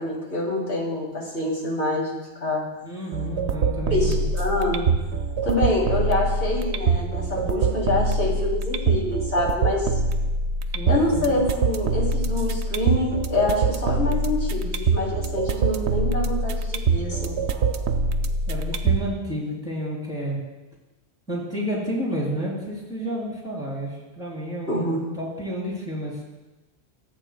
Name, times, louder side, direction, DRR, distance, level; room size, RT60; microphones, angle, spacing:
voice 1, 0.0-2.6 3.9-4.8 5.4-9.9 10.9-17.4 24.7-25.1, left 2 dB, 75° left, -6 dB, 3.2 m, -26 dB
voice 2, 2.8-4.2 10.7-11.3 18.5-20.4 21.3-26.2, equal, 5° right, -4 dB, 3.1 m, -30 dB
sound 1, 3.1-19.1, right 3 dB, 80° right, 0.9 m, -24 dB
15.0 x 7.9 x 2.2 m, 1.1 s
omnidirectional pair, 1.1 m